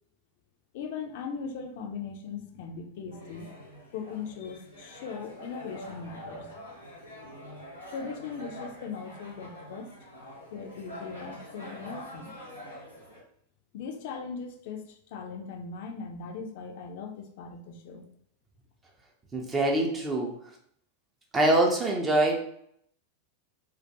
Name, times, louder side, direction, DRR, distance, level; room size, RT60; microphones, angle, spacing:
voice 1, 0.7-3.5 3.9-6.5 7.2-7.3 7.9-9.9 10.5-12.4 13.7-18.0, left 5 dB, 50° left, 4 dB, 0.4 m, -39 dB
sound 1, 3.1-13.2, equal, 90° right, 0.7 m, -45 dB
voice 2, 19.3-20.3 21.3-22.5, right 2 dB, 20° right, 0 dB, 0.4 m, -24 dB
2.2 x 2.1 x 2.6 m, 0.68 s
figure-of-eight pair, 90°, 0 cm